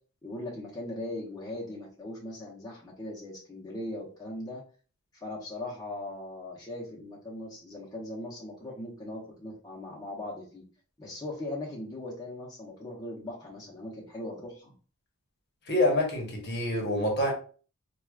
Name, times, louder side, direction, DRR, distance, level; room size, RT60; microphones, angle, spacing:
voice 1, 0.2-4.6 5.1-10.6 11.0-14.7, left 1 dB, 15° left, 0.8 m, -39 dB
voice 2, 15.7-17.3, left 1 dB, 50° left, 1.0 m, -26 dB
4.6 x 2.3 x 2.3 m
head